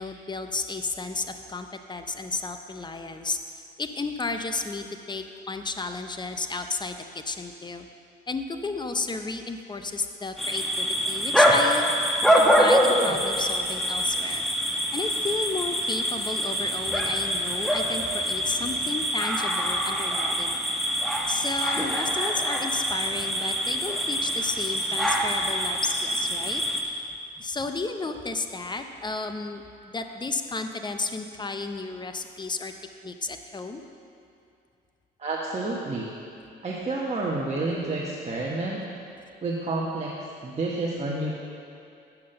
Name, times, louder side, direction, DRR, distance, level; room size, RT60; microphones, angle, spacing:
voice 1, 0.0-3.4 3.8-7.9 8.3-11.8 12.4-20.6 21.3-27.0 27.4-32.7 33.0-33.8, left 3 dB, 20° left, 7 dB, 0.6 m, -33 dB
sound 1, 10.4-26.8, equal, ahead, 1.1 m, -25 dB
voice 2, 35.2-36.1 36.6-38.8 39.4-40.1 40.4-41.4, right 2 dB, 35° right, -4 dB, 1.1 m, -29 dB
8.5 x 5.8 x 6.4 m, 2.5 s
cardioid pair, 90°, 20 cm